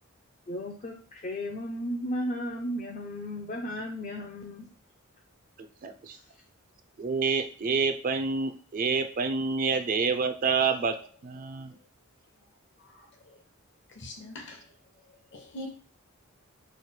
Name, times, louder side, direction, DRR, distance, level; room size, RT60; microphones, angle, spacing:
voice 1, 0.5-4.7 6.1-6.2, equal, 35° left, 0 dB, 0.4 m, -34 dB
voice 2, 5.8-6.2 7.0-11.0 11.2-11.7, right 5 dB, 40° right, 8 dB, 0.3 m, -28 dB
voice 3, 12.8-13.4 13.9-14.7 15.1-15.7, left 1 dB, 55° left, 2 dB, 0.9 m, -44 dB
3.2 x 2.1 x 4.3 m, 0.39 s
head